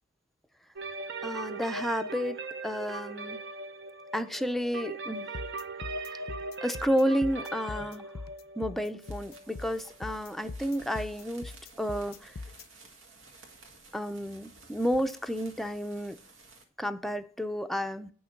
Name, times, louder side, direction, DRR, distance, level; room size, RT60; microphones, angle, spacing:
sound 1, 0.8-10.4, right 3 dB, 60° right, 0.9 m, -40 dB
voice 1, 1.2-3.4 4.1-5.3 6.0-6.2 6.6-8.1 8.6-12.4 13.9-16.2 16.8-18.1, equal, ahead, 0.5 m, -31 dB
sound 2, 5.3-12.6, left 3 dB, 55° left, 0.5 m, -41 dB
sound 3, 8.9-16.6, right 3 dB, 80° right, 1.9 m, -54 dB
9.1 x 6.3 x 5.8 m
head